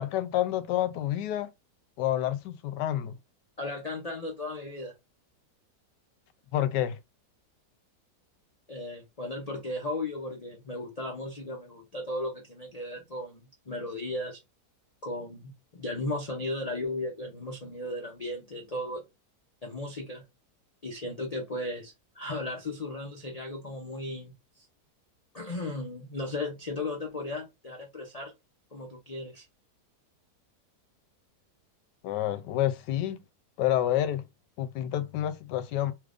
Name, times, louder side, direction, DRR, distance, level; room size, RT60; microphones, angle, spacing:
voice 1, 0.0-1.5 2.0-3.1 6.5-7.0 32.0-33.2 33.6-34.2 34.6-35.9, left 12 dB, 85° left, 1.2 m, -28 dB
voice 2, 3.6-4.9 8.7-14.4 15.0-19.0 19.6-20.2 20.8-24.7 25.3-28.3 28.7-29.4, left 2 dB, 65° left, 0.3 m, -36 dB
3.1 x 2.5 x 3.4 m
omnidirectional pair, 1.8 m